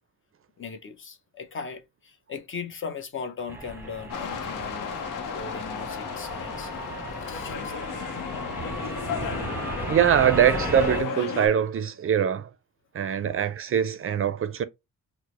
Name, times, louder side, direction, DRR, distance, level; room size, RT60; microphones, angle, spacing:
voice 1, 0.6-5.1 5.3-7.9, left 5 dB, 40° left, 0.7 m, -38 dB
sound 1, 3.5-11.0, right 1 dB, 5° right, 0.8 m, -36 dB
sound 2, 4.1-11.5, left 6 dB, 85° left, 0.8 m, -34 dB
voice 2, 9.9-12.5 12.9-14.6, right 9 dB, 45° right, 0.4 m, -23 dB
4.6 x 2.1 x 2.9 m
wide cardioid pair, 155°, 31 cm